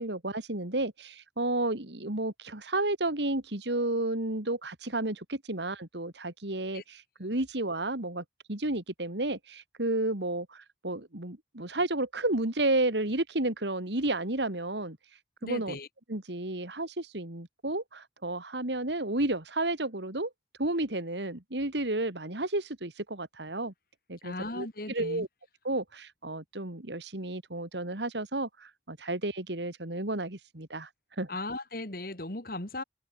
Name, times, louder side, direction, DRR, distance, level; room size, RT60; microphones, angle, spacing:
voice 1, 0.0-15.0 15.4-15.8 16.1-20.3 20.6-23.7 24.1-25.3 25.6-30.9 31.2-31.3, right 2 dB, 75° right, 2.9 m, -32 dB
voice 2, 15.4-15.9 24.2-25.3 31.3-32.8, left 2 dB, 50° left, 2.9 m, -37 dB
open air
head